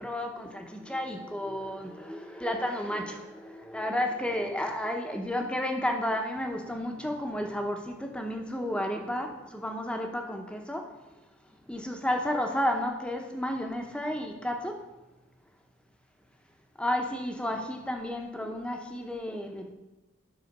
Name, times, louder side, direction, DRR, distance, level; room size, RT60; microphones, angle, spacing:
voice 1, 0.0-10.9 11.7-14.8 16.8-19.7, left 1 dB, 5° left, 3 dB, 0.8 m, -32 dB
9.4 x 5.5 x 5.4 m, 1.1 s
head